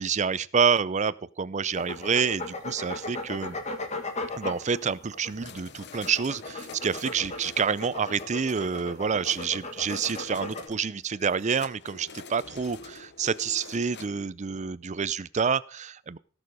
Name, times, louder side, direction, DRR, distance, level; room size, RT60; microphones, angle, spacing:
voice 1, 0.0-3.6 4.4-16.2, right 6 dB, 35° right, 18 dB, 0.5 m, -28 dB
sound 1, 1.7-10.7, left 2 dB, 35° left, 1.8 m, -37 dB
sound 2, 5.3-14.1, left 4 dB, 55° left, 0.9 m, -47 dB
17.0 x 6.9 x 4.9 m, 0.40 s
head